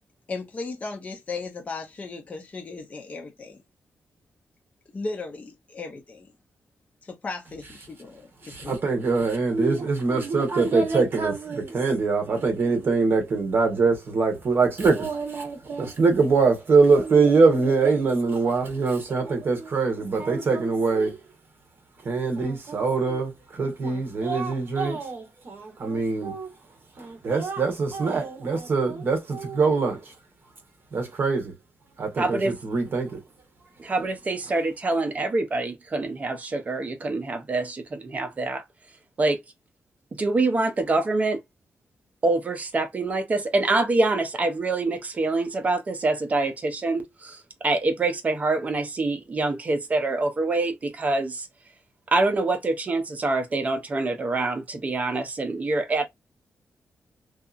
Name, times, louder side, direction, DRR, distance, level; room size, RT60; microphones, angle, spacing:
voice 1, 0.3-3.6 4.9-6.3 7.0-8.9, left 3 dB, 30° left, 0.5 m, -36 dB
voice 2, 8.4-21.2 22.0-26.5 27.0-30.1 30.9-31.5 32.0-33.2, right 4 dB, 45° right, 1.1 m, -23 dB
voice 3, 32.2-32.5 33.8-38.6 39.2-39.4 40.1-41.4 42.2-51.5 52.1-56.1, right 2 dB, 30° right, 0.5 m, -25 dB
2.7 x 2.3 x 2.4 m
wide cardioid pair, 170°, 5 cm